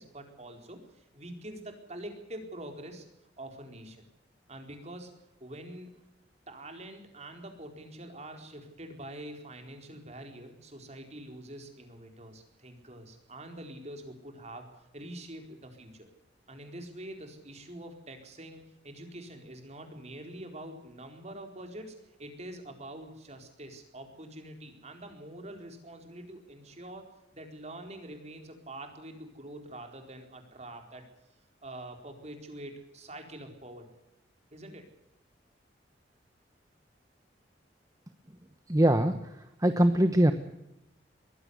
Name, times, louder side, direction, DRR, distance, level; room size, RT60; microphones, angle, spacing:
voice 1, 0.0-3.1 3.4-4.0 4.5-5.1 5.4-5.9 6.5-14.7 14.9-16.1 16.5-27.1 27.3-31.0 31.6-33.9 34.5-34.9, right 1 dB, 40° right, 4 dB, 4.3 m, -45 dB
voice 2, 38.7-40.3, right 1 dB, 20° right, 9 dB, 1.1 m, -23 dB
22.0 x 15.5 x 8.2 m, 0.91 s
head